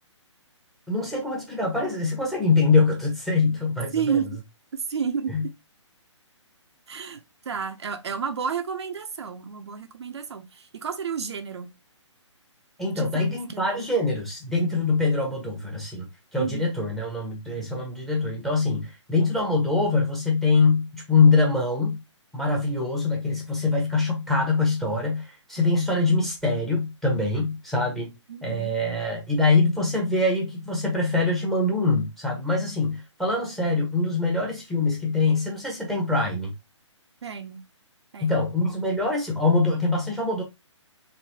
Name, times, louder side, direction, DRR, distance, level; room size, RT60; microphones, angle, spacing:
voice 1, 0.9-4.2 5.3-5.4 12.8-16.1 16.3-22.0 22.3-28.1 28.4-36.5 38.2-40.4, left 3 dB, ahead, 0.7 m, -24 dB
voice 2, 3.9-4.4 4.7-5.5 6.9-7.2 7.5-11.7 13.0-13.9 16.4-16.6 25.6-25.7 28.3-28.7 37.2-37.6 38.1-38.4, right 6 dB, 60° right, 0.5 m, -31 dB
3.2 x 2.6 x 2.7 m
figure-of-eight pair, 140°, 16 cm